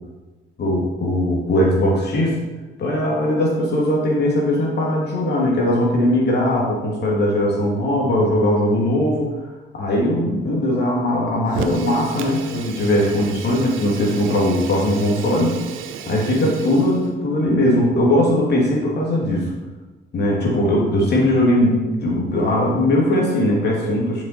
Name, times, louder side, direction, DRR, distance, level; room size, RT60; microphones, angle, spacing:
voice 1, 0.6-2.4 2.8-9.3 9.7-15.6 16.0-19.5 20.1-24.2, left 1 dB, 55° left, -3 dB, 2.9 m, -19 dB
Fire, 11.5-17.1, right 7 dB, 85° right, 0.7 m, -33 dB
7.3 x 6.8 x 4.5 m, 1.2 s
cardioid pair, 90°, 20 cm